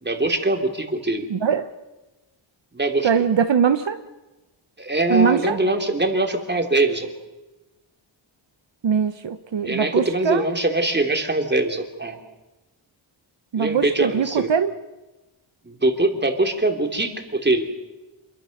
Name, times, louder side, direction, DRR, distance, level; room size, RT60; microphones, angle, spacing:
voice 1, 0.0-1.3 2.7-3.2 4.8-7.1 9.6-12.2 13.5-14.5 15.6-17.7, right 2 dB, 20° right, 5 dB, 3.2 m, -22 dB
voice 2, 1.3-1.7 3.0-4.0 5.1-5.6 8.8-10.4 13.5-14.7, right 7 dB, 65° right, 9 dB, 1.1 m, -21 dB
27.0 x 22.5 x 6.7 m, 1.1 s
wide cardioid pair, 100°, 48 cm